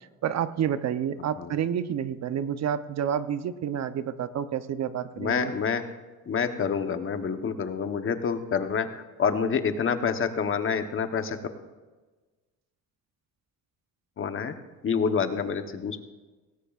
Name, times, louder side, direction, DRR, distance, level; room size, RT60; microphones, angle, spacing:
voice 1, 0.2-5.5, right 9 dB, 55° right, 12 dB, 0.7 m, -29 dB
voice 2, 5.2-5.9 6.3-11.4 14.2-14.5 14.8-16.0, left 6 dB, 40° left, 8 dB, 1.0 m, -27 dB
19.0 x 17.5 x 2.4 m, 1.3 s
cardioid pair, 125°, 33 cm